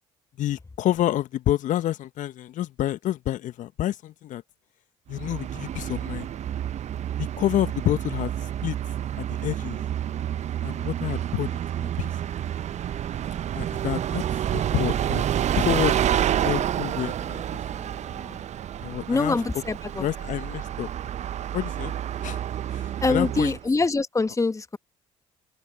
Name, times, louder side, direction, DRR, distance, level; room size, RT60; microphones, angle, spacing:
voice 1, 0.4-4.4 5.1-6.3 7.2-8.8 9.2-9.8 10.6-12.1 13.5-15.2 15.6-16.0 16.4-17.4 18.8-19.4 20.0-20.9 21.5-21.9 22.2-22.4 22.7-23.6, left 13 dB, 60° left, 1.5 m, -28 dB
Bus, 5.1-23.7, right 10 dB, 50° right, 0.9 m, -29 dB
voice 2, 17.7-18.4 19.1-20.0 23.0-24.8, left 3 dB, 20° left, 1.6 m, -25 dB
open air
figure-of-eight pair, 50°, 15 cm